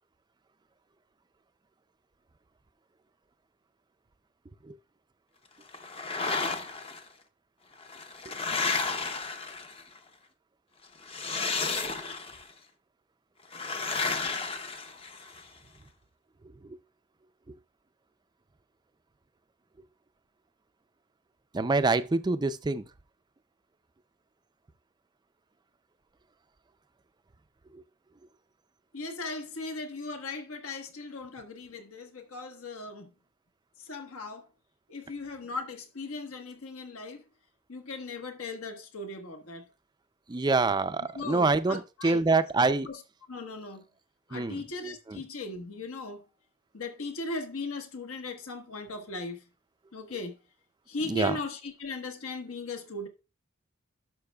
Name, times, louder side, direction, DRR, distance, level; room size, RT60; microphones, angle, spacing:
sound 1, 5.7-7.0 7.8-10.0 11.0-12.5 13.5-15.4, left 4 dB, 25° left, 0.7 m, -32 dB
voice 1, 21.5-22.8 40.3-42.9 44.3-44.6 45.1-45.2 51.1-51.4, right 3 dB, 20° right, 0.4 m, -26 dB
voice 2, 28.9-33.1 33.8-34.5 34.9-37.2 37.7-39.7 41.1-42.2 42.8-43.0 43.3-43.8 44.3-46.2 46.7-49.4 49.9-50.3 50.9-53.1, left 3 dB, 70° left, 1.3 m, -38 dB
11.5 x 6.1 x 2.3 m
head